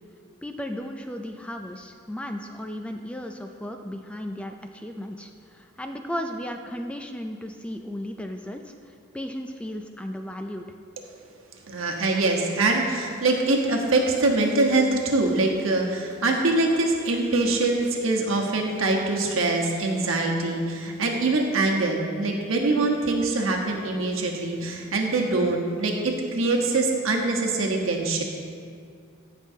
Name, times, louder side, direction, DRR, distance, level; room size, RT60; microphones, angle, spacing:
voice 1, 0.4-10.6, equal, 5° left, 5 dB, 0.3 m, -35 dB
voice 2, 11.7-28.2, right 2 dB, 85° right, 1 dB, 1.1 m, -24 dB
16.0 x 5.4 x 2.7 m, 2.2 s
head